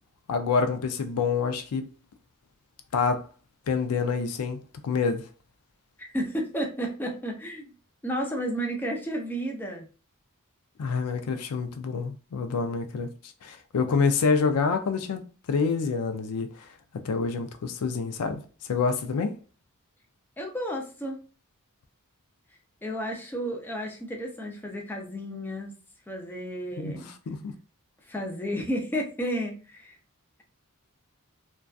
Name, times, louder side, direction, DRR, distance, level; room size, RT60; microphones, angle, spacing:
voice 1, 0.3-1.9 2.9-3.3 3.7-5.3 10.8-15.2 15.5-16.7 17.0-18.4 18.7-19.3 26.8-27.5, left 5 dB, 80° left, 0.4 m, -27 dB
voice 2, 6.0-7.7 8.0-9.9 20.4-21.2 22.8-25.7 26.1-27.1 28.0-30.0, equal, 10° left, 0.4 m, -32 dB
2.5 x 2.2 x 2.3 m
head